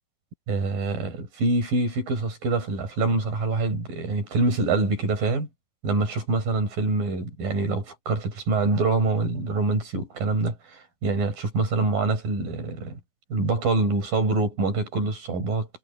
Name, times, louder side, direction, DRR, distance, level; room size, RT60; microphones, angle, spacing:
voice 1, 0.5-5.5 5.8-13.0 13.3-15.7, right 3 dB, 50° right, 7.2 m, -25 dB
omnidirectional pair, 5.2 m